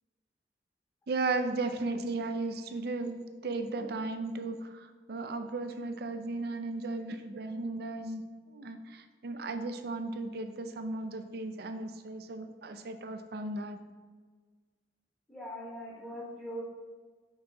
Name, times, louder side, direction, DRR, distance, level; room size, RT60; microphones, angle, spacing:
voice 1, 1.1-8.2 8.5-13.8, right 3 dB, 60° right, 8 dB, 0.5 m, -35 dB
voice 2, 15.3-16.6, equal, 15° left, -5 dB, 1.0 m, -41 dB
5.6 x 3.8 x 4.6 m, 1.5 s
head